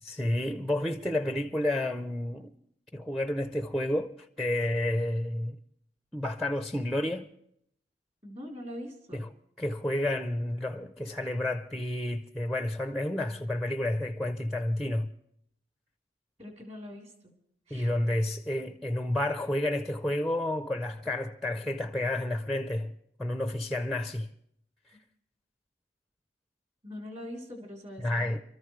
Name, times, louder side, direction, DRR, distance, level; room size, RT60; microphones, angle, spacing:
voice 1, 0.0-2.5 2.9-5.6 6.1-7.3 9.1-9.3 9.6-15.1 17.7-22.9 23.2-24.3 24.9-25.0 28.0-28.4, left 1 dB, ahead, 0.5 m, -30 dB
voice 2, 8.2-9.2 16.4-17.3 17.7-17.9 26.8-28.4, left 1 dB, 35° right, 3.5 m, -43 dB
27.0 x 14.0 x 3.2 m
head